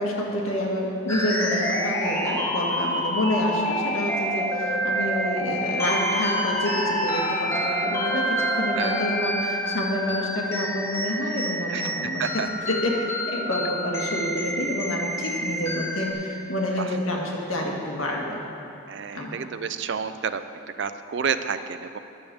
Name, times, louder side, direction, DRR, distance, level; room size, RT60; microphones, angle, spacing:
voice 1, 0.0-18.4 19.1-19.4, left 1 dB, 90° left, -1 dB, 1.8 m, -28 dB
sound 1, 1.1-16.1, equal, 15° left, 1.5 m, -27 dB
voice 2, 18.9-20.4 20.8-22.0, right 6 dB, 60° right, 11 dB, 0.4 m, -29 dB
10.0 x 7.0 x 6.9 m, 2.7 s
head